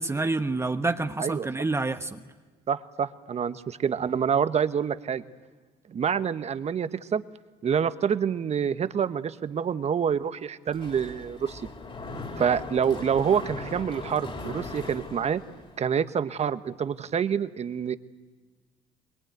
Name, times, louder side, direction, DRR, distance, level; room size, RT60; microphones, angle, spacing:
voice 1, 0.0-2.2, right 3 dB, 15° right, 1.1 m, -28 dB
voice 2, 2.7-5.2 5.9-7.2 7.6-11.6 12.4-15.4 15.8-18.0, right 7 dB, 45° right, 1.2 m, -27 dB
Mechanisms, 10.7-15.9, left 3 dB, 35° left, 3.5 m, -39 dB
23.5 x 22.0 x 9.4 m
supercardioid pair, 80°, 16 cm